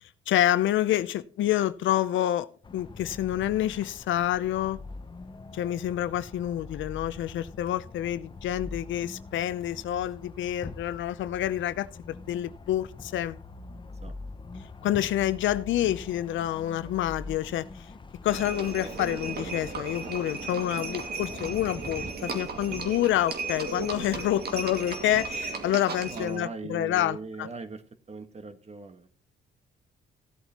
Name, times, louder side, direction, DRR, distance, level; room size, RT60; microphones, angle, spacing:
voice 1, 0.3-2.5 2.7-4.8 5.5-13.4 14.8-17.6 18.2-27.5, left 12 dB, 75° left, 0.7 m, -28 dB
sound 1, 2.6-22.1, left 3 dB, 25° left, 0.8 m, -44 dB
Livestock farm animals working animals, 18.3-26.4, right 4 dB, 55° right, 2.2 m, -36 dB
voice 2, 26.1-27.8 28.1-29.1, right 3 dB, 35° right, 1.5 m, -39 dB
16.5 x 8.1 x 3.0 m
cardioid pair, 90°, 20 cm